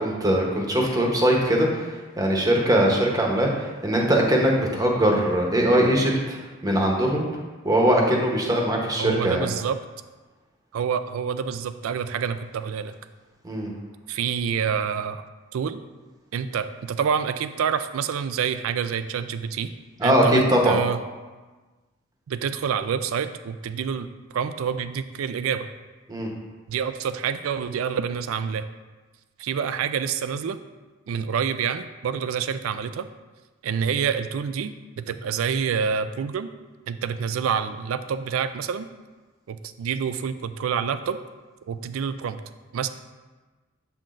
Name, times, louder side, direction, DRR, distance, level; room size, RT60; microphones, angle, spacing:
voice 1, 0.0-6.4 6.6-7.2 7.6-9.5 13.4-13.7 20.0-20.8 26.1-26.3, right 1 dB, 20° right, -1 dB, 0.9 m, -21 dB
voice 2, 9.0-9.8 10.7-12.9 14.1-15.2 15.5-15.8 16.3-19.7 20.0-21.0 22.3-24.1 24.3-25.7 26.7-28.7 29.4-30.6 31.1-33.1 33.6-36.5 36.9-38.9 39.5-41.2 41.7-42.4 42.7-42.9, right 7 dB, 75° right, 12 dB, 0.3 m, -27 dB
7.4 x 5.7 x 2.5 m, 1.3 s
head